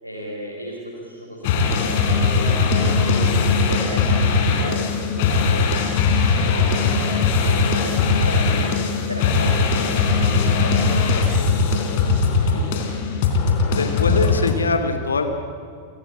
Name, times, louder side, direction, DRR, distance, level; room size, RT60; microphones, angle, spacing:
voice 1, 0.0-6.8 7.7-8.6 9.0-12.1 12.4-13.2, right 1 dB, 85° right, -4 dB, 5.0 m, -35 dB
sound 1, 1.4-14.6, left 4 dB, 50° left, 3.6 m, -19 dB
voice 2, 13.8-15.2, left 4 dB, 75° left, 7 dB, 2.6 m, -22 dB
29.5 x 17.0 x 8.7 m, 2.2 s
figure-of-eight pair, 90°, 0 cm